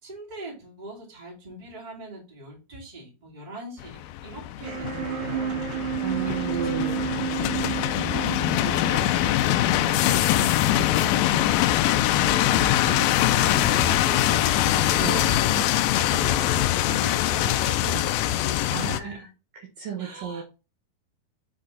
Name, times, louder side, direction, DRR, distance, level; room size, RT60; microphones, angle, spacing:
voice 1, 0.0-5.6 6.2-6.8 8.1-12.0 12.5-16.4 16.9-19.3 20.0-20.4, right 1 dB, 15° right, -4 dB, 2.1 m, -40 dB
sound 1, 3.8-19.0, left 13 dB, 85° left, 2.1 m, -23 dB
sound 2, 4.6-10.5, right 9 dB, 90° right, 3.6 m, -32 dB
voice 2, 6.0-7.1 15.0-15.2 18.7-19.3 19.5-20.4, right 8 dB, 65° right, 0 dB, 2.5 m, -33 dB
sound 3, 12.2-17.5, left 4 dB, 30° right, 2.0 m, -35 dB
7.8 x 3.8 x 3.9 m, 0.30 s
omnidirectional pair, 4.7 m